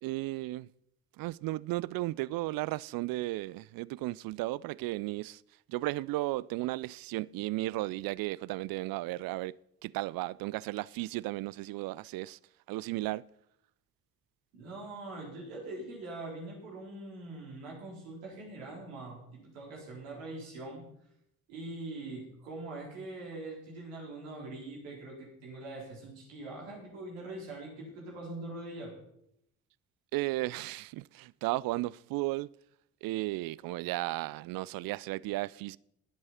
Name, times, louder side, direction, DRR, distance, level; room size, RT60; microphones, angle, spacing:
voice 1, 0.0-0.7 1.2-5.4 5.7-9.6 9.8-12.4 12.7-13.2 30.1-32.5 33.0-35.8, right 19 dB, 60° right, 0.5 m, -34 dB
voice 2, 14.5-20.8 21.5-28.9, right 2 dB, 80° right, 4.0 m, -43 dB
18.5 x 7.8 x 4.3 m
hypercardioid pair, 40°, 39 cm